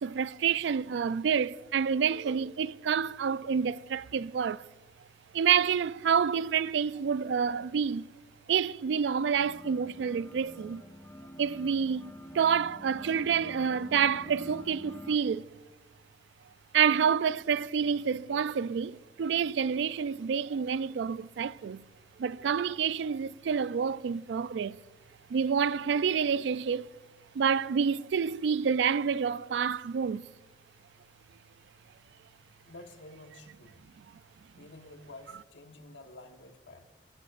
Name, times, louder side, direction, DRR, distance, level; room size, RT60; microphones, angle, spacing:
voice 1, 0.0-4.7 5.3-8.1 8.5-10.8 11.4-15.5 16.7-21.8 22.2-24.8 25.3-26.9 27.3-30.3, right 7 dB, 70° right, 0.3 m, -28 dB
sound 1, 9.3-15.2, left 1 dB, 15° left, 0.4 m, -47 dB
voice 2, 32.6-33.8 34.6-36.9, left 2 dB, 90° left, 1.3 m, -50 dB
19.0 x 15.5 x 2.5 m
head